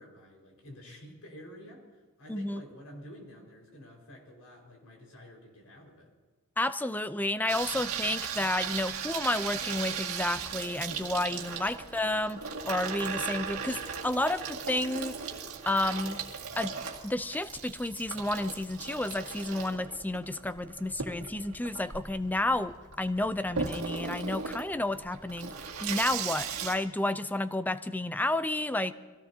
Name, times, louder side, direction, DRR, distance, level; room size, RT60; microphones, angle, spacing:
voice 1, 0.0-6.1, equal, 85° left, 0 dB, 5.0 m, -50 dB
voice 2, 2.3-2.6 6.6-15.2 15.7-16.2 16.6-16.7 17.0-25.6 25.8-28.9, left 1 dB, 10° left, 13 dB, 0.4 m, -31 dB
Water tap faucet / Sink (filling or washing), 7.5-26.7, right 6 dB, 80° right, 2.0 m, -37 dB
24.5 x 17.0 x 2.8 m, 1.4 s
head